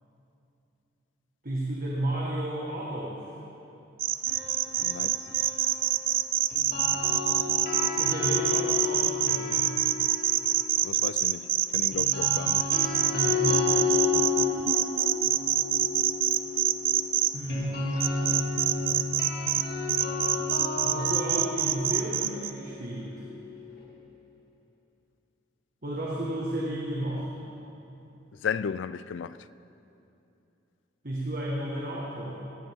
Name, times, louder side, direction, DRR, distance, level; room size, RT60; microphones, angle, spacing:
voice 1, 1.4-3.3 8.0-9.8 13.1-13.8 17.3-17.7 20.8-23.2 25.8-27.3 31.0-32.4, right 1 dB, 45° right, 1.6 m, -32 dB
sound 1, 4.0-17.3 18.0-19.6 19.9-22.5, right 12 dB, 90° right, 0.6 m, -25 dB
Piano, 4.3-7.1, equal, 20° left, 4.1 m, -48 dB
voice 2, 4.8-5.2 10.8-12.7 28.4-29.4, left 6 dB, 70° left, 0.4 m, -34 dB
sound 2, 6.5-10.7 11.9-23.8, left 5 dB, 50° left, 2.6 m, -32 dB
20.0 x 16.5 x 3.7 m
head